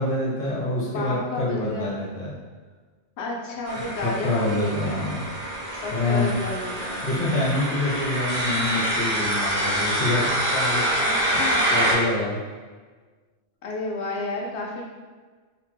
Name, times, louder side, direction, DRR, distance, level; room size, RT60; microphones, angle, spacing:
voice 1, 0.0-2.4 4.0-5.2 5.9-6.3 7.0-10.8 11.7-12.4, left 2 dB, 60° left, -6 dB, 1.0 m, -26 dB
voice 2, 0.8-2.0 3.2-5.0 5.8-7.0 11.0-11.7 13.6-15.0, left 2 dB, 85° left, -1 dB, 0.9 m, -32 dB
sound 1, 3.7-11.9, right 1 dB, 50° right, 0.7 m, -26 dB
2.7 x 2.1 x 3.2 m, 1.4 s
omnidirectional pair, 1.1 m